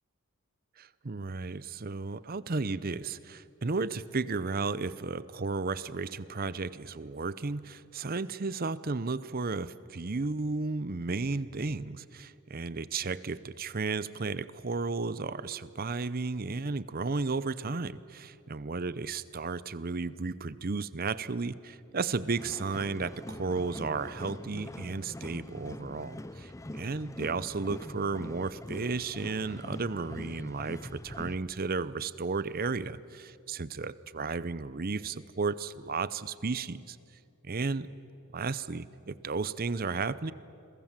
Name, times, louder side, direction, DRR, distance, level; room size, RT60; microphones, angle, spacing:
voice 1, 0.8-37.0 37.4-37.9 38.3-40.3, right 4 dB, 40° right, 17 dB, 0.7 m, -33 dB
sound 1, 22.4-31.4, left 1 dB, 15° left, 0.6 m, -43 dB
29.5 x 22.5 x 7.5 m, 2.6 s
head